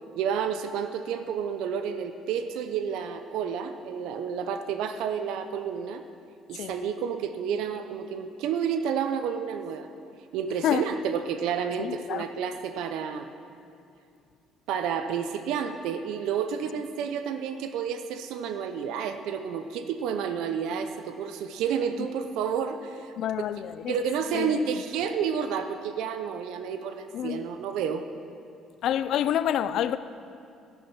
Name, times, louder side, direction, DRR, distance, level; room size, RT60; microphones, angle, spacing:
voice 1, 0.1-6.0 6.5-9.9 10.3-13.3 14.7-23.1 23.9-28.0, right 7 dB, 80° right, 0.6 m, -30 dB
voice 2, 11.8-12.3 23.2-24.0 24.3-24.6 27.1-27.5 28.8-30.0, left 10 dB, 55° left, 0.5 m, -28 dB
13.5 x 10.5 x 5.7 m
cardioid pair, 160°, 0 cm